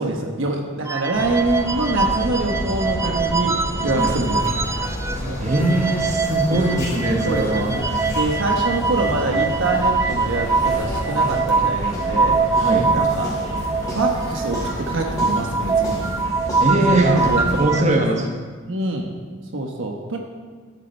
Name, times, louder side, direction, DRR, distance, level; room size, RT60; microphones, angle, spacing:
voice 1, 0.0-4.6 5.2-5.4 6.5-6.8 7.2-7.8 8.1-12.4 12.9-13.3 13.8-16.1 16.9-18.0 18.6-19.1 19.5-20.2, right 2 dB, 65° right, 2 dB, 1.2 m, -25 dB
sound 1, 0.9-5.2 5.5-17.8, right 4 dB, 15° right, 0.4 m, -23 dB
sound 2, 1.1-17.6, equal, 15° left, 3.0 m, -30 dB
sound 3, 4.0-16.2, left 2 dB, 35° left, 2.0 m, -39 dB
voice 2, 5.4-8.2 12.5-12.9 16.6-17.2 17.6-18.3, right 1 dB, 35° right, 1 dB, 1.4 m, -21 dB
12.5 x 10.0 x 4.5 m, 1.5 s
head